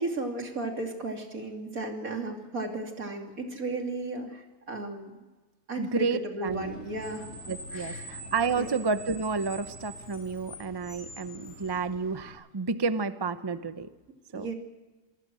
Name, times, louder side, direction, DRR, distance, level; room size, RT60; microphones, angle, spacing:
voice 1, 0.0-5.2 5.7-7.3 7.7-8.1 8.5-8.7 14.3-14.5, right 2 dB, 60° right, 3 dB, 3.2 m, -34 dB
voice 2, 5.8-6.7 7.5-13.9 14.3-14.5, right 4 dB, 30° right, 12 dB, 0.4 m, -30 dB
Screech, 6.5-12.3, equal, 55° left, 4.3 m, -44 dB
27.5 x 18.5 x 6.2 m, 1.2 s
omnidirectional pair, 1.6 m